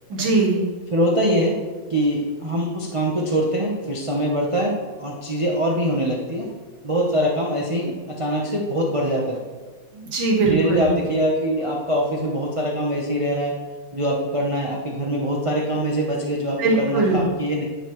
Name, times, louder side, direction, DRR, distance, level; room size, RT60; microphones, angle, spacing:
voice 1, 0.1-0.6 9.9-10.9 16.6-17.3, right 3 dB, 80° right, -2 dB, 2.4 m, -20 dB
voice 2, 0.9-1.6 1.9-6.5 6.8-9.4 10.4-13.5 13.9-17.6, equal, 35° right, -3 dB, 0.4 m, -23 dB
10.5 x 6.8 x 3.1 m, 1.3 s
omnidirectional pair, 2.1 m